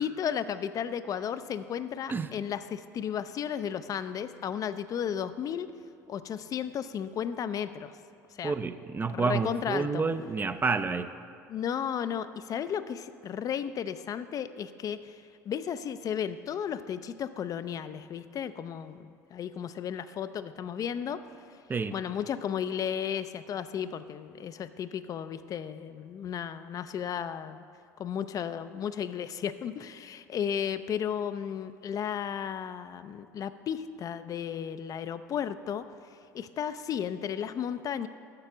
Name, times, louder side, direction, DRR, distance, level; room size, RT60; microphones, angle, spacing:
voice 1, 0.0-5.7 6.1-7.9 8.3-8.5 9.1-10.0 11.5-21.2 21.9-27.6 28.0-35.8 36.3-38.1, left 8 dB, 40° left, 12 dB, 0.4 m, -34 dB
voice 2, 8.4-11.1 21.7-21.9, right 4 dB, 20° right, 11 dB, 0.4 m, -29 dB
6.7 x 6.7 x 7.1 m, 2.4 s
hypercardioid pair, 65°, 9 cm